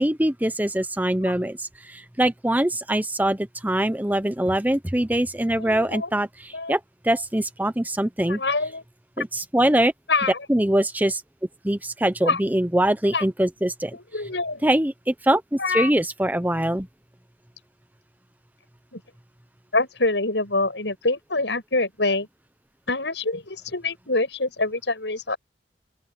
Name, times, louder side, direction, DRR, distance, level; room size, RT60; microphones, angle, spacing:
voice 1, 0.0-8.4 9.2-9.9 10.5-11.2 11.6-14.0 14.6-16.9, right 1 dB, 10° right, 0.9 m, -23 dB
voice 2, 5.6-6.1 6.5-6.7 8.3-8.8 9.2-9.3 10.1-10.4 12.3-12.4 13.1-13.2 14.1-14.6 15.6-15.9 18.9-19.0 19.7-22.3 22.9-25.4, left 3 dB, 90° left, 7.6 m, -25 dB
open air
head